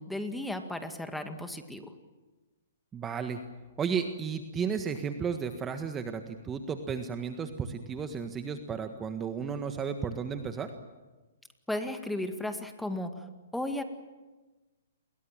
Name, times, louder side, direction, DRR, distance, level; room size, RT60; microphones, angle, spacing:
voice 1, 0.0-1.9 11.7-13.2 13.5-13.8, left 1 dB, 5° left, 7 dB, 2.0 m, -35 dB
voice 2, 2.9-3.4 3.8-10.7, right 6 dB, 15° right, 7 dB, 1.5 m, -33 dB
29.0 x 22.5 x 7.5 m, 1.2 s
hypercardioid pair, 135°, 0 cm